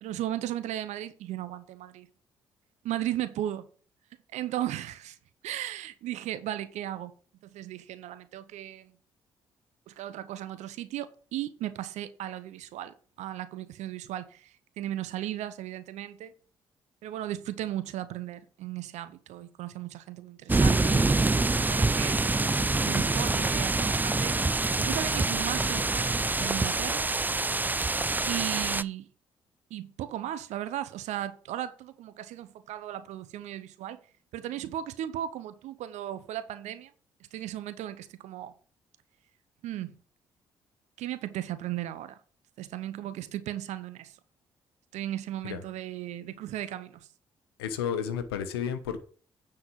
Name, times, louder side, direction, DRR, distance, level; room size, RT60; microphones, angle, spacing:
voice 1, 0.0-2.1 2.8-3.7 4.3-5.2 5.4-7.1 7.4-8.9 9.9-16.3 17.0-21.3 21.7-22.2 22.8-27.1 28.3-29.1 29.7-34.0 34.3-36.9 37.3-38.5 39.6-40.0 41.0-42.2 42.6-44.2 44.9-47.1, right 12 dB, 70° right, 0.7 m, -36 dB
sound 1, 20.5-28.8, right 3 dB, 15° right, 0.5 m, -26 dB
voice 2, 47.6-49.0, left 8 dB, 85° left, 1.0 m, -32 dB
9.6 x 4.5 x 6.9 m
hypercardioid pair, 45°, 12 cm